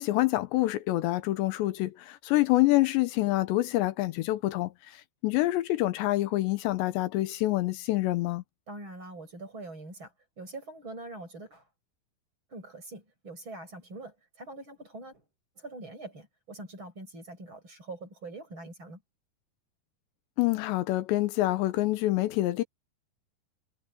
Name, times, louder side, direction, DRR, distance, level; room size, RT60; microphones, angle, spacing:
voice 1, 0.0-8.4 20.4-22.6, left 17 dB, 80° left, 3.1 m, -27 dB
voice 2, 8.7-11.7 12.5-15.2 15.5-19.0, right 2 dB, 25° right, 8.5 m, -44 dB
omnidirectional pair, 5.1 m